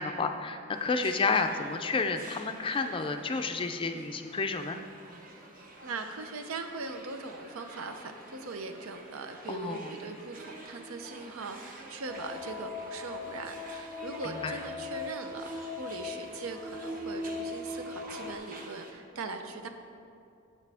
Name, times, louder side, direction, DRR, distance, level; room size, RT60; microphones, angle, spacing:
voice 1, 0.0-4.8 9.5-9.9 14.2-14.5, left 4 dB, 25° left, 7 dB, 0.4 m, -31 dB
sound 1, 0.7-18.9, right 2 dB, 40° right, 0.9 m, -49 dB
voice 2, 5.8-19.7, right 3 dB, 85° right, 6 dB, 0.6 m, -40 dB
sound 2, 12.1-18.4, left 3 dB, ahead, 0.8 m, -39 dB
8.3 x 7.8 x 3.5 m, 2.5 s
head